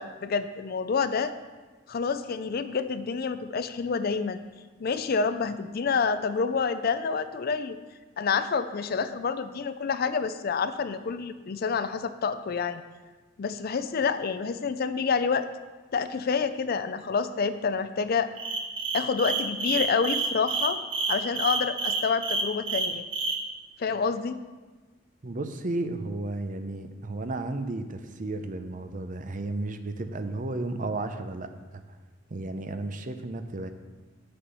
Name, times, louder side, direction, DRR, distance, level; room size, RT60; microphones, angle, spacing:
voice 1, 0.0-1.3 1.9-4.4 4.8-7.8 8.2-12.8 13.4-15.5 15.9-18.3 18.9-20.8 21.1-23.0 23.8-24.4, left 5 dB, 50° left, 11 dB, 0.4 m, -28 dB
sound 1, 18.4-23.4, right 4 dB, 70° right, 1.0 m, -28 dB
voice 2, 25.2-31.8 32.3-33.7, right 2 dB, 40° right, 8 dB, 0.6 m, -33 dB
7.8 x 6.7 x 5.5 m, 1.3 s
head